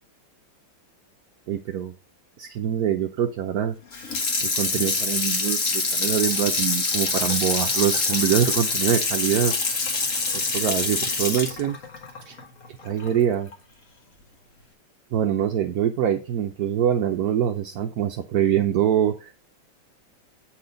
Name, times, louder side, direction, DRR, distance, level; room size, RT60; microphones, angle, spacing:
voice 1, 1.5-1.9 2.4-3.8 4.4-9.5 10.3-11.8 12.3-12.4 12.8-13.5 15.1-19.3, right 9 dB, 65° right, 4 dB, 1.0 m, -24 dB
Water tap faucet / Sink (filling or washing), 3.9-13.1 13.5-13.6, left 3 dB, 45° left, 1.7 m, -25 dB
8.7 x 4.3 x 5.1 m, 0.32 s
omnidirectional pair, 2.2 m